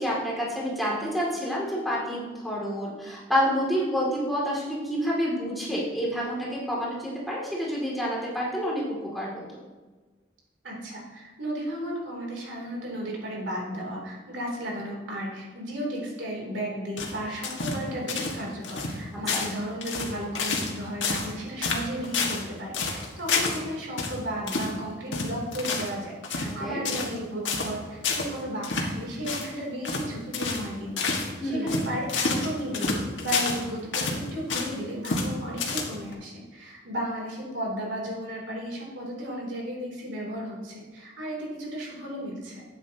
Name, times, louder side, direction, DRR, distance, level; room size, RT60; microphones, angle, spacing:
voice 1, 0.0-9.3 19.3-19.4 26.4-26.8 31.4-31.8, equal, ahead, -6 dB, 2.5 m, -28 dB
voice 2, 10.6-42.6, equal, 85° right, -2 dB, 3.1 m, -34 dB
sound 1, 17.0-17.8 18.1-18.4 18.6-19.0 19.3-19.6 19.8-20.7 21.0-21.3 21.6-22.4 22.7-23.6 24.0-24.1 24.5-24.7 25.1-25.9 26.2-26.5 26.8-27.2 27.4-27.7 28.0-28.3 28.6-28.9 29.2-29.5 29.8-30.1 30.3-30.7 31.0-31.3 31.7-33.6 33.9-34.7 35.0-35.3 35.6-36.1, left 4 dB, 90° left, 1.7 m, -29 dB
12.5 x 9.0 x 2.9 m, 1.3 s
head